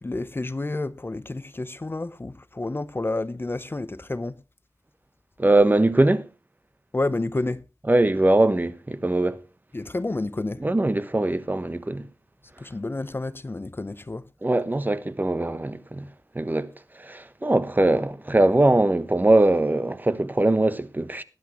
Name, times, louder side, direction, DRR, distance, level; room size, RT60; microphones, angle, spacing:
voice 1, 0.0-4.4 6.9-7.6 9.7-10.6 12.6-14.2, left 2 dB, 35° left, 0.7 m, -30 dB
voice 2, 5.4-6.3 7.9-9.4 10.6-12.0 14.4-16.1 16.3-16.7 17.0-21.2, right 2 dB, 25° right, 1.1 m, -21 dB
18.5 x 10.5 x 3.1 m
wide cardioid pair, 70°, 7 cm